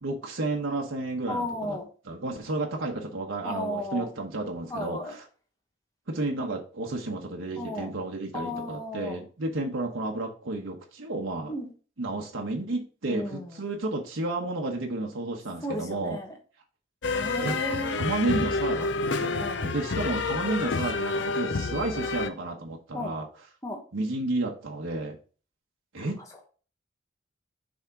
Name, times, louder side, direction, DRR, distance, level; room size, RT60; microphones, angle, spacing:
voice 1, 0.0-1.8 2.1-5.2 6.1-11.5 12.0-16.2 17.4-17.5 17.9-18.9 19.2-23.3 23.9-25.2 25.9-26.1, right 2 dB, 85° right, 0 dB, 1.1 m, -31 dB
voice 2, 1.3-1.9 3.4-4.1 4.7-5.2 7.6-7.9 8.3-9.2 11.5-11.7 13.1-13.6 15.6-16.3 17.1-18.0 19.3-19.7 22.9-23.1 23.6-23.8 26.0-26.1, left 1 dB, 15° left, 1 dB, 1.1 m, -34 dB
sound 1, 17.0-22.3, left 3 dB, 65° left, 0.6 m, -29 dB
6.3 x 3.6 x 4.6 m, 0.38 s
head